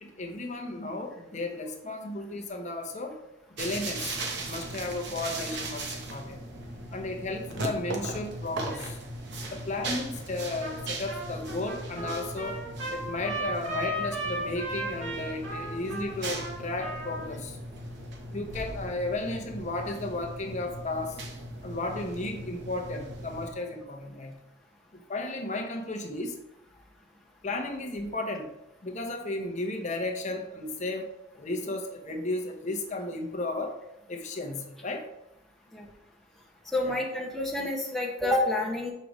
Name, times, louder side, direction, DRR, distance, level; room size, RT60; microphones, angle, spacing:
voice 1, 0.0-3.2 3.5-6.4 6.9-9.0 9.5-12.6 12.9-17.6 18.3-21.2 21.6-24.4 24.9-26.4 27.4-28.5 28.8-31.1 31.3-33.8 34.1-35.1 36.8-37.0, left 2 dB, 35° left, 3 dB, 0.7 m, -34 dB
sound 1, 3.6-23.5, right 1 dB, 60° right, 0.9 m, -38 dB
Trumpet, 10.6-10.8 11.1-17.3, right 1 dB, 75° right, 1.9 m, -35 dB
voice 2, 36.7-38.9, left 1 dB, ahead, -2 dB, 0.7 m, -28 dB
6.5 x 5.0 x 3.1 m, 0.88 s
head